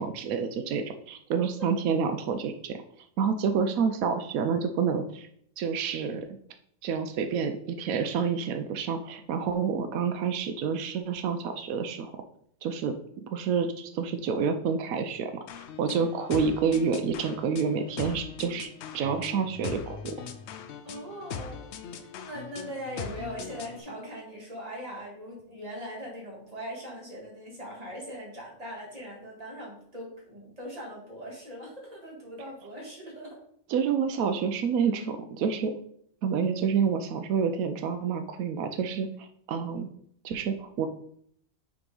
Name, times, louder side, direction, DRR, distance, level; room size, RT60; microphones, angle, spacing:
voice 1, 0.0-2.8 3.2-5.3 5.6-6.4 6.8-12.1 12.6-15.4 15.8-18.7 18.9-20.1 33.7-35.7 36.2-39.9 40.2-40.9, right 6 dB, 90° right, 7 dB, 1.0 m, -28 dB
sound 1, 15.5-23.8, left 7 dB, 65° left, 0.8 m, -41 dB
voice 2, 20.8-21.6 21.9-33.4, equal, 30° right, -3 dB, 1.9 m, -40 dB
5.9 x 3.8 x 4.7 m, 0.66 s
omnidirectional pair, 1.4 m